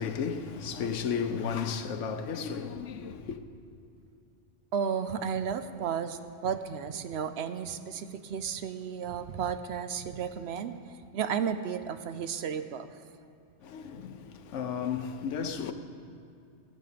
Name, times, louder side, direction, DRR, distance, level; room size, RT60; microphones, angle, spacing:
voice 1, 0.0-3.4 13.6-15.7, left 6 dB, 85° left, 1.1 m, -33 dB
voice 2, 4.7-10.7 11.1-12.9, right 7 dB, 70° right, 0.8 m, -33 dB
15.0 x 7.4 x 6.7 m
omnidirectional pair, 1.2 m